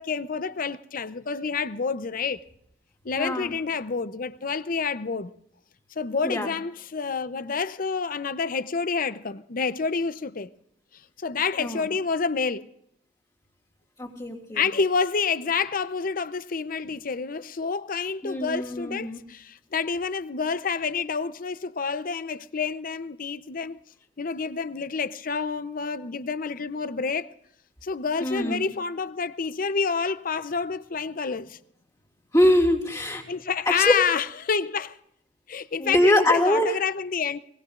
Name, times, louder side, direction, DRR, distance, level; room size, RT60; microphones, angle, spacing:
voice 1, 0.0-2.4 3.0-5.3 6.0-10.5 11.2-12.7 14.5-23.8 24.2-27.3 27.8-31.6 33.3-35.0 35.5-37.4, left 5 dB, 50° left, 0.7 m, -28 dB
voice 2, 3.2-3.5 6.2-6.5 11.6-11.8 14.0-14.6 18.2-19.2 28.2-28.6 32.3-33.2 33.8-33.9 35.8-36.7, left 1 dB, 25° left, 2.9 m, -23 dB
23.5 x 20.5 x 2.5 m
head